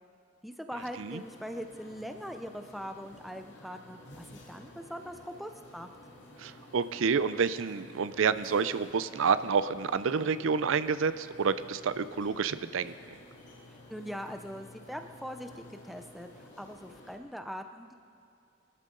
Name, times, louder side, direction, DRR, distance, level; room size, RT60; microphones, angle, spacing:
voice 1, 0.4-5.9 13.9-16.3 16.6-17.9, equal, ahead, 6 dB, 0.5 m, -41 dB
sound 1, 0.7-17.2, left 1 dB, 55° left, 2.5 m, -52 dB
voice 2, 6.4-12.9, right 5 dB, 75° right, 14 dB, 0.5 m, -29 dB
23.0 x 13.0 x 3.8 m, 2.5 s
head